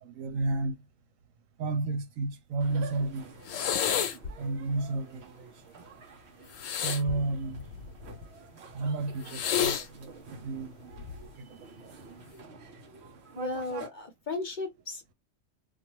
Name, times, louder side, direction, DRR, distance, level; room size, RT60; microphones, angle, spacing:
voice 1, 0.0-0.8 1.6-3.3 4.4-5.5 6.7-7.6 8.7-11.9, right 3 dB, 90° right, 1.0 m, -32 dB
sound 1, 2.6-13.9, right 4 dB, 60° right, 1.0 m, -49 dB
sound 2, 3.5-4.3 6.5-8.1 9.3-9.9 10.9-11.3, left 8 dB, 85° left, 1.0 m, -30 dB
voice 2, 13.4-15.1, left 2 dB, 45° left, 0.7 m, -35 dB
2.5 x 2.2 x 2.8 m
omnidirectional pair, 1.3 m